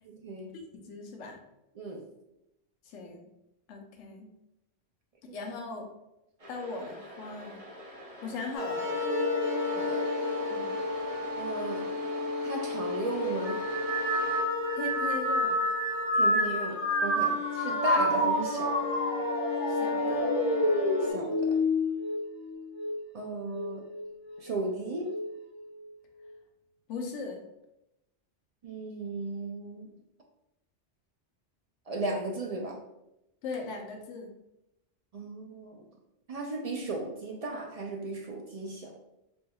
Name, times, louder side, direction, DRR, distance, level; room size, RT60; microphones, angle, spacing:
voice 1, 0.0-0.6 1.7-2.1 5.3-5.4 9.8-10.1 11.4-12.0 12.4-13.6 16.1-18.9 21.0-21.6 23.1-23.9 24.4-25.1 28.6-29.9 31.9-32.8 35.1-35.8 36.3-39.0, right 2 dB, 70° right, 1 dB, 0.3 m, -36 dB
voice 2, 0.7-1.4 2.9-3.3 3.7-4.3 5.3-5.9 6.5-7.6 8.2-8.8 10.5-10.8 14.7-15.6 19.7-20.3 26.9-27.4 33.4-34.3, left 3 dB, 80° left, 3 dB, 1.0 m, -39 dB
sound 1, 6.4-9.0 9.4-14.4, equal, 35° right, 0.9 m, -46 dB
sound 2, 8.5-21.1, left 2 dB, 30° left, 1.4 m, -32 dB
sound 3, 13.4-23.0 23.5-24.1 25.0-25.4, left 1 dB, 45° left, 1.3 m, -29 dB
4.3 x 3.3 x 2.2 m, 0.89 s
omnidirectional pair, 1.2 m